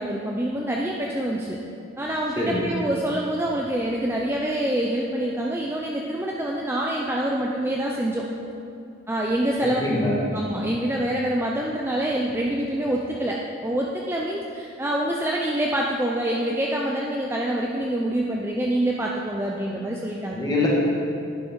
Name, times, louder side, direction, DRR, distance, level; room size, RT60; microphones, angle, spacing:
voice 1, 0.0-1.6 2.0-8.2 9.1-9.8 10.3-20.4, right 1 dB, 10° right, -2 dB, 0.5 m, -26 dB
voice 2, 9.8-10.4 20.3-20.7, left 2 dB, 20° left, -5 dB, 2.1 m, -24 dB
11.0 x 10.0 x 4.7 m, 2.6 s
head